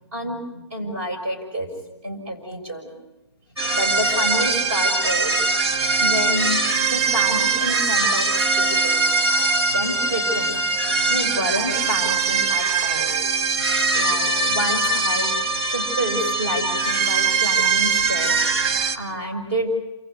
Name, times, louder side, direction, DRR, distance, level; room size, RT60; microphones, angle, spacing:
voice 1, 0.1-1.7 2.0-2.9 3.7-5.4 6.0-10.6 11.1-13.1 13.9-15.3 15.6-18.4 18.9-19.7, equal, 30° right, 3 dB, 6.1 m, -29 dB
sound 1, 3.6-19.0, right 3 dB, 55° right, 2.0 m, -21 dB
28.5 x 16.0 x 9.6 m, 1.1 s
hypercardioid pair, 165°, 15 cm